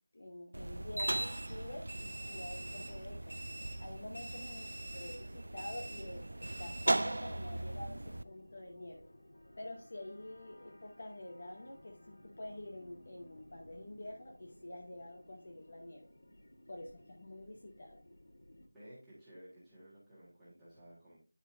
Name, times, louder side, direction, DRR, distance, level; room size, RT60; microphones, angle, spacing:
voice 1, 0.1-3.4 3.8-4.7 4.9-9.0 9.6-16.1 16.7-18.0, left 1 dB, 30° left, 1 dB, 0.8 m, -48 dB
sound 1, 0.5-8.2, right 1 dB, 50° right, 0.3 m, -38 dB
sound 2, 2.0-18.7, left 1 dB, 60° left, 1.4 m, -59 dB
voice 2, 18.7-21.2, equal, ahead, -14 dB, 1.6 m, -55 dB
9.7 x 4.9 x 2.6 m, 0.33 s
figure-of-eight pair, 180°, 0 cm